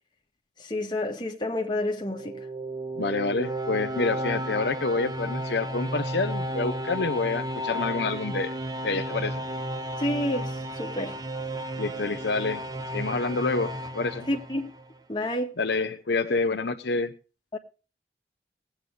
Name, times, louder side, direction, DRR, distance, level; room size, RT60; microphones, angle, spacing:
voice 1, 0.6-2.5 10.0-11.2 14.3-14.7 15.1-15.5 17.5-17.6, left 1 dB, 25° left, 1.8 m, -29 dB
sound 1, 1.9-15.0, equal, 20° right, 0.7 m, -33 dB
voice 2, 3.0-8.5 8.8-9.4 11.8-12.6 12.9-14.3 15.6-17.1, left 3 dB, 70° left, 0.8 m, -28 dB
19.5 x 8.9 x 3.3 m
head